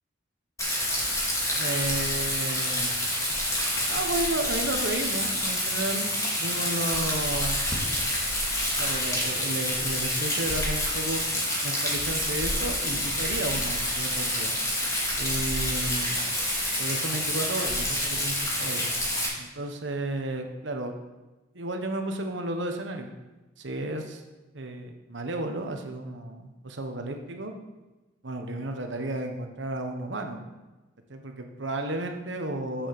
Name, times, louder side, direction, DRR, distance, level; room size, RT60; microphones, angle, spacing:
Rain, 0.6-19.3, left 1 dB, 15° left, 2.4 m, -28 dB
voice 1, 1.6-3.0 3.9-6.1 6.4-7.6 8.8-11.2 11.6-14.5 15.2-16.2 16.8-18.9 19.4-20.9 21.5-23.1 23.6-24.2 24.5-27.5 28.2-30.4 31.1-32.9, right 2 dB, 65° right, 4 dB, 1.2 m, -33 dB
8.0 x 7.3 x 6.7 m, 1.1 s
head